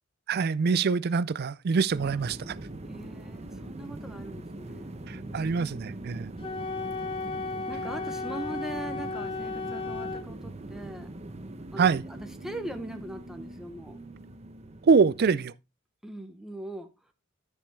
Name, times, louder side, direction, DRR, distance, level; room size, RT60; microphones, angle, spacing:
voice 1, 0.3-2.6 5.1-6.3 11.8-12.0 14.8-15.5, right 5 dB, 50° right, 0.4 m, -24 dB
sound 1, 1.9-15.3, right 1 dB, 30° right, 0.8 m, -42 dB
voice 2, 2.8-6.2 7.7-11.1 11.7-14.0 16.0-16.9, right 1 dB, ahead, 0.8 m, -41 dB
Wind instrument woodwind instrument, 6.4-10.3, left 3 dB, 25° left, 1.1 m, -34 dB
13.0 x 5.5 x 3.2 m
head